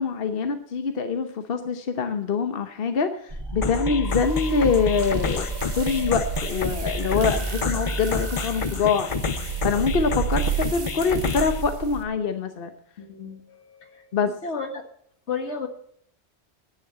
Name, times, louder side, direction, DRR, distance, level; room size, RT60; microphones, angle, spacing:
voice 1, 0.0-3.1 3.5-5.4 5.8-9.1 9.6-10.4 10.7-12.7 14.1-14.3, left 5 dB, 60° left, 7 dB, 1.1 m, -24 dB
sound 1, 3.3-8.9, right 2 dB, 25° right, 1.6 m, -31 dB
sound 2, 3.6-11.6, left 5 dB, 35° left, 0.6 m, -30 dB
sound 3, 4.1-12.0, right 7 dB, 80° right, 1.7 m, -33 dB
voice 2, 13.0-14.1 14.4-14.8 15.3-15.7, left 5 dB, 90° left, 6 dB, 1.8 m, -33 dB
11.0 x 9.5 x 8.0 m, 0.67 s
omnidirectional pair, 1.1 m